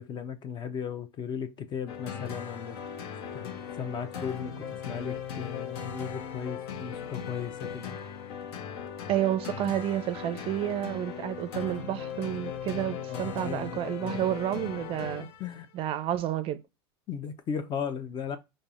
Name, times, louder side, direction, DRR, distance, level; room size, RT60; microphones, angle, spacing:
voice 1, 0.0-2.8 3.3-3.5 3.8-8.0 13.1-14.3 15.4-15.7 17.1-18.4, left 7 dB, 35° left, 0.5 m, -36 dB
sound 1, 1.9-15.6, left 7 dB, 75° left, 0.7 m, -38 dB
voice 2, 9.1-15.3 15.7-16.6, right 12 dB, 40° right, 0.4 m, -30 dB
5.2 x 2.0 x 2.4 m
supercardioid pair, 110°, 14 cm